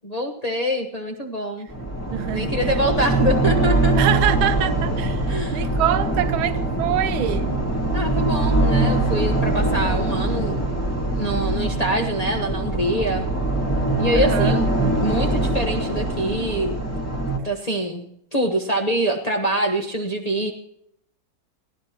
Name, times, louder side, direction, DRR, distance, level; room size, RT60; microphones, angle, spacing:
voice 1, 0.0-1.7 2.3-4.1 5.3-5.8 7.9-10.6 11.1-13.3 14.0-16.7 17.4-18.1 18.3-20.5, right 1 dB, 25° left, 0.9 m, -25 dB
sound 1, 1.7-17.4, right 2 dB, 10° left, 1.8 m, -22 dB
voice 2, 2.1-2.5 4.0-7.6 14.1-14.6, right 12 dB, 85° right, 1.6 m, -25 dB
22.0 x 15.5 x 3.0 m
omnidirectional pair, 2.2 m